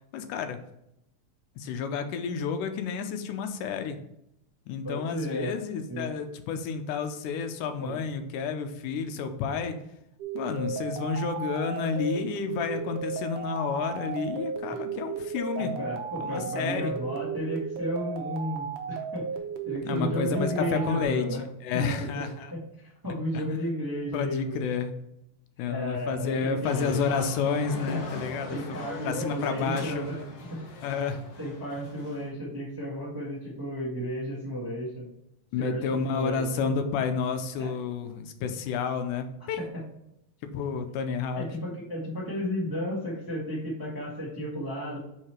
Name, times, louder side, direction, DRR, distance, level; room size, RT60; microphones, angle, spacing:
voice 1, 0.1-0.6 1.6-4.0 4.7-9.8 10.3-15.7 16.2-16.9 19.9-22.5 23.3-23.6 24.1-24.9 25.6-28.8 29.0-30.1 30.8-31.2 35.5-39.7 40.5-41.5, left 6 dB, 90° left, 8 dB, 2.2 m, -30 dB
voice 2, 4.8-5.5 5.9-6.1 7.8-8.0 14.7-14.8 15.6-19.3 19.6-21.4 21.7-22.2 22.5-24.6 25.6-27.3 27.9-28.1 28.3-30.1 30.5-30.6 31.4-35.1 35.6-36.4 37.6-37.7 41.3-45.0, equal, 15° right, -5 dB, 0.7 m, -33 dB
sound 1, 10.2-21.1, right 6 dB, 80° right, 2.3 m, -35 dB
sound 2, 26.6-32.3, left 3 dB, 65° left, 1.6 m, -41 dB
5.6 x 4.8 x 4.4 m, 0.82 s
omnidirectional pair, 3.6 m